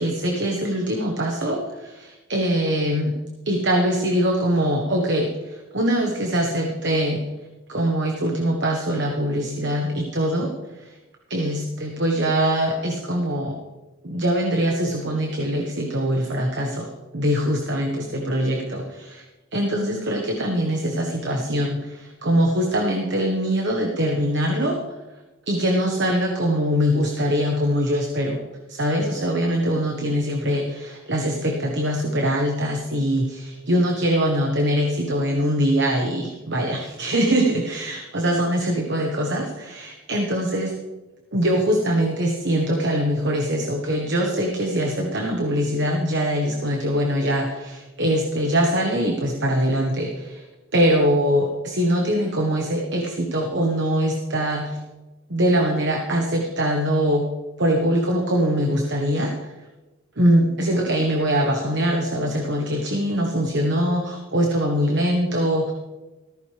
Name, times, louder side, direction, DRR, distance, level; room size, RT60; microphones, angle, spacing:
voice 1, 0.0-3.2 3.4-7.2 7.7-10.5 10.8-10.9 11.3-13.6 14.0-19.2 19.5-24.8 25.5-28.4 28.7-40.7 41.3-50.4 50.7-54.8 55.3-57.3 57.6-59.3 60.2-65.7, equal, 50° right, 1 dB, 1.3 m, -23 dB
14.5 x 14.0 x 3.4 m, 1.1 s
head